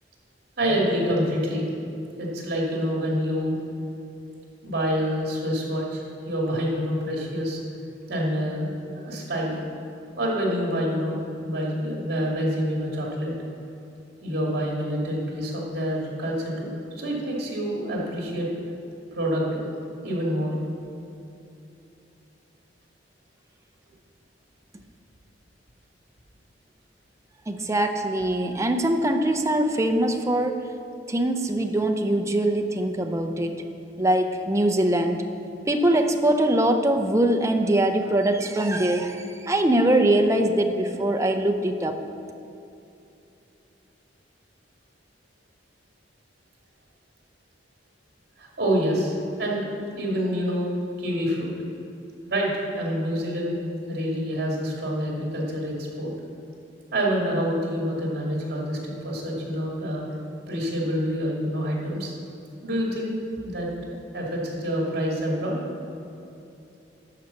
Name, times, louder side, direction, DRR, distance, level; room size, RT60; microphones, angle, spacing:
voice 1, 0.6-1.7 2.2-3.6 4.6-7.6 8.1-9.6 10.2-13.3 14.2-16.7 17.0-18.5 19.1-19.6 20.0-20.5 48.4-49.6 49.9-50.7 51.0-51.5 52.3-52.5 52.8-53.5 53.9-56.1 56.9-60.0 60.5-62.1 62.6-63.1 63.4-63.7 64.1-65.6, equal, 60° right, -3 dB, 2.4 m, -27 dB
voice 2, 27.5-30.7 31.1-33.5 34.0-35.2 35.7-42.0, right 1 dB, 15° right, 5 dB, 0.6 m, -22 dB
11.5 x 4.6 x 7.0 m, 2.7 s
head